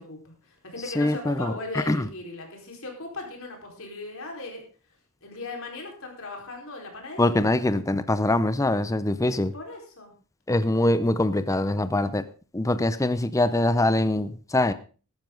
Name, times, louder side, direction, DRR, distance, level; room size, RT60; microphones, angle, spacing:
voice 1, 0.0-4.6 5.2-7.5 9.3-10.1, left 2 dB, 65° left, 1 dB, 4.4 m, -38 dB
voice 2, 1.0-2.1 7.2-9.5 10.5-12.2 12.5-14.7, left 1 dB, 15° left, 13 dB, 0.6 m, -23 dB
14.5 x 12.5 x 3.8 m, 0.37 s
head